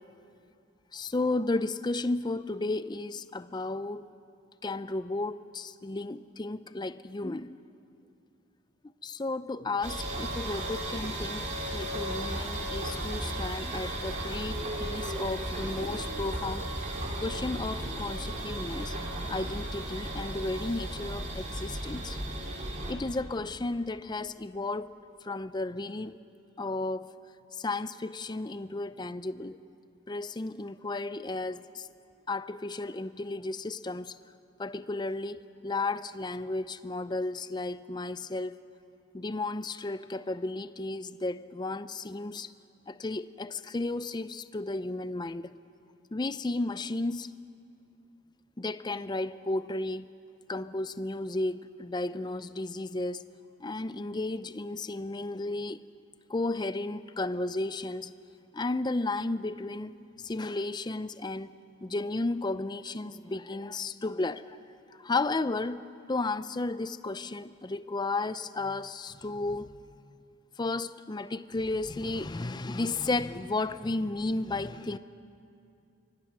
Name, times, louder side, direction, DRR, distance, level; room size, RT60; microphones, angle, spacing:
voice 1, 0.9-4.0 4.6-7.6 9.0-11.4 11.7-16.7 17.2-18.9 19.3-22.2 22.9-24.9 25.2-26.2 26.6-27.1 27.5-29.6 30.1-31.9 32.3-34.1 34.6-38.6 39.1-42.5 42.9-45.5 46.1-47.3 48.6-50.1 50.5-53.2 53.6-55.8 56.3-58.1 58.5-59.9 60.2-61.5 61.8-64.6 65.0-65.8 66.1-69.7 70.6-75.0, left 2 dB, 20° left, 0.5 m, -33 dB
sound 1, 9.8-22.9, right 1 dB, 35° right, 2.9 m, -35 dB
25.0 x 24.0 x 6.2 m
head